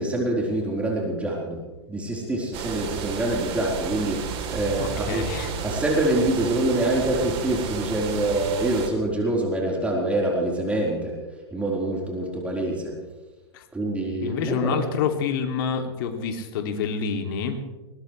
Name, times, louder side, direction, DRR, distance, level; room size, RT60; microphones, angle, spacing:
voice 1, 0.0-5.3 5.6-11.2 11.5-12.9 13.7-14.8, right 1 dB, 10° right, -3 dB, 4.2 m, -25 dB
sound 1, 2.5-8.9, right 7 dB, 40° right, 3.4 m, -32 dB
voice 2, 4.8-5.5 13.5-13.6 14.2-17.6, left 6 dB, 50° left, 5 dB, 2.7 m, -27 dB
21.5 x 19.0 x 3.3 m, 1.2 s
hypercardioid pair, 115°, 15 cm